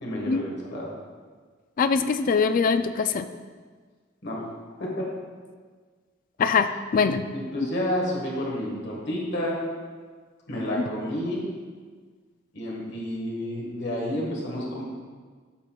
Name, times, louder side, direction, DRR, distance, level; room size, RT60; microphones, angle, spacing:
voice 1, 0.0-0.9 4.2-4.5 4.8-5.1 7.3-9.6 10.5-11.5 12.5-14.8, equal, 60° left, -3 dB, 1.5 m, -30 dB
voice 2, 1.8-3.3 6.4-7.3, left 5 dB, 45° left, 10 dB, 0.3 m, -23 dB
13.0 x 4.4 x 2.3 m, 1.5 s
head